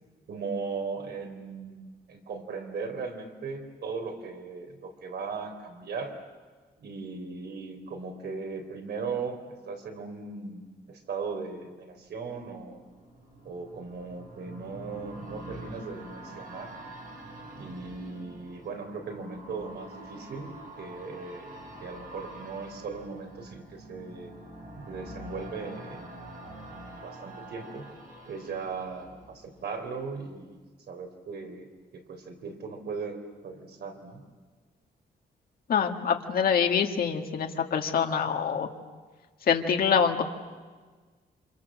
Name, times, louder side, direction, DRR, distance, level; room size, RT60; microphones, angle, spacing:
voice 1, 0.3-6.2 6.8-9.4 9.7-12.8 13.5-16.7 17.6-21.5 21.8-24.3 24.8-26.2 26.7-27.9 28.3-30.6 30.9-31.7 31.9-34.2, right 4 dB, 70° right, 4 dB, 3.8 m, -38 dB
sound 1, 12.1-29.9 30.2-30.3, right 1 dB, 50° right, 7.9 m, -46 dB
voice 2, 35.7-38.7 39.5-40.2, left 7 dB, 55° left, 4 dB, 1.9 m, -25 dB
29.0 x 26.5 x 7.6 m, 1.4 s
wide cardioid pair, 175°, 18 cm